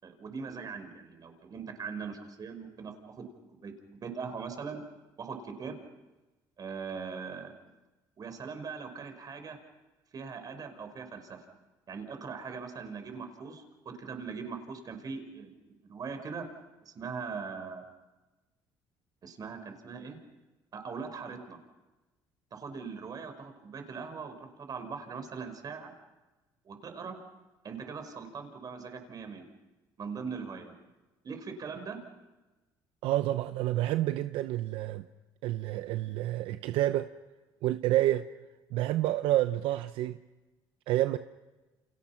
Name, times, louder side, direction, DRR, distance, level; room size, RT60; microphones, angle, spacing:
voice 1, 0.0-3.3 3.6-3.7 4.0-4.8 5.2-5.8 6.6-7.5 8.2-9.6 10.1-11.4 11.9-16.4 16.8-17.8 19.2-20.2 20.7-21.6 22.5-25.9 26.6-27.2 27.6-29.5 30.0-30.7 31.2-32.0, right 5 dB, 45° right, 5.0 m, -40 dB
voice 2, 33.0-35.0 35.4-37.1 37.6-38.3 38.7-40.2 40.9-41.2, right 14 dB, 80° right, 0.8 m, -28 dB
29.5 x 28.0 x 5.9 m
cardioid pair, 100°, 9 cm